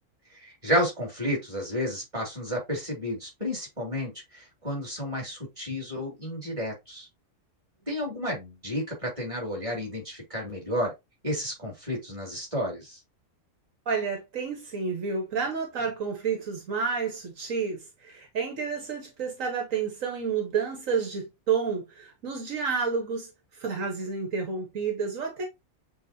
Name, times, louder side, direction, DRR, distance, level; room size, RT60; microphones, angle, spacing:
voice 1, 0.3-7.0 7.9-10.9 11.2-13.0, equal, 25° right, 2.6 m, -31 dB
voice 2, 13.8-25.4, right 5 dB, 75° right, 1.5 m, -30 dB
7.7 x 2.6 x 2.7 m
omnidirectional pair, 1.4 m